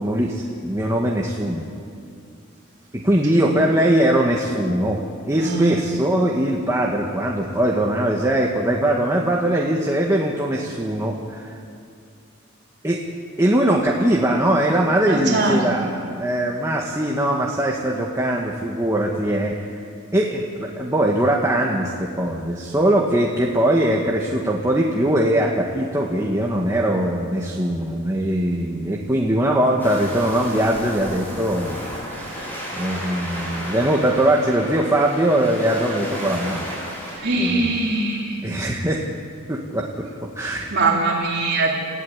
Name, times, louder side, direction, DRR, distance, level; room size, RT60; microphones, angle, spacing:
voice 1, 0.0-1.7 2.9-11.6 12.8-13.0 13.4-32.4 32.7-36.7 37.4-37.7 38.4-39.0 39.5-40.7, right 1 dB, 15° right, -1 dB, 1.8 m, -21 dB
voice 2, 5.4-5.9 15.1-15.6 37.2-38.4 40.7-41.8, right 2 dB, 55° right, -3 dB, 4.0 m, -22 dB
Waves surf, 29.8-37.2, equal, 10° left, 7.6 m, -33 dB
27.5 x 16.0 x 9.7 m, 2.4 s
head